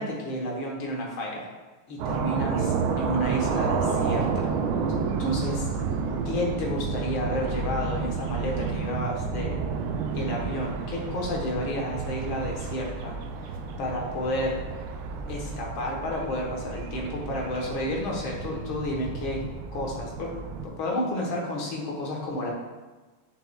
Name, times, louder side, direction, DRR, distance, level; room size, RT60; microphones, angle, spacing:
voice 1, 0.0-1.5 1.9-4.5 5.2-5.6 6.3-9.6 10.1-13.1 13.4-14.6 15.3-19.4 19.7-20.3 20.8-22.5, left 1 dB, 85° left, -2 dB, 2.1 m, -31 dB
sound 1, 2.0-20.7, right 5 dB, 85° right, 1.4 m, -30 dB
7.8 x 5.5 x 2.3 m, 1.3 s
omnidirectional pair, 2.2 m